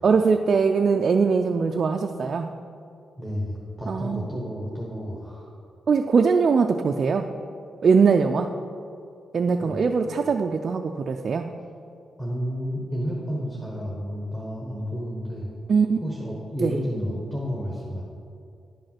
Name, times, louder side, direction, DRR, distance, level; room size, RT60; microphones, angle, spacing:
voice 1, 0.0-2.5 3.9-4.3 5.9-7.3 7.8-8.5 9.3-11.5 15.7-16.0 16.6-16.7, right 5 dB, 40° right, 4 dB, 0.3 m, -21 dB
voice 2, 3.2-5.5 9.6-9.8 12.2-15.5 16.0-18.0, equal, 5° left, -4 dB, 1.2 m, -31 dB
10.5 x 5.3 x 5.8 m, 2.5 s
wide cardioid pair, 160°, 0 cm